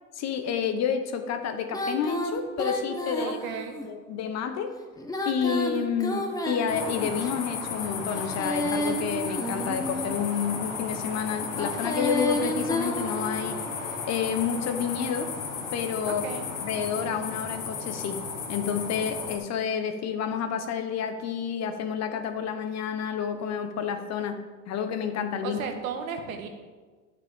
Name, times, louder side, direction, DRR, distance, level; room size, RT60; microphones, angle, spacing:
voice 1, 0.2-3.4 3.9-4.7 5.2-13.6 14.1-15.3 15.7-16.2 16.6-18.2 18.5-25.6, left 7 dB, 40° left, 8 dB, 1.0 m, -29 dB
Female singing, 1.7-3.9 5.0-7.3 8.1-10.2 11.5-13.7, left 1 dB, 10° left, 1.1 m, -31 dB
voice 2, 3.2-3.8 16.0-16.5 25.4-26.5, right 6 dB, 80° right, 5 dB, 1.6 m, -34 dB
sound 1, 6.7-19.4, left 5 dB, 80° left, 2.2 m, -34 dB
9.9 x 8.9 x 3.6 m, 1.4 s
hypercardioid pair, 100°, 41 cm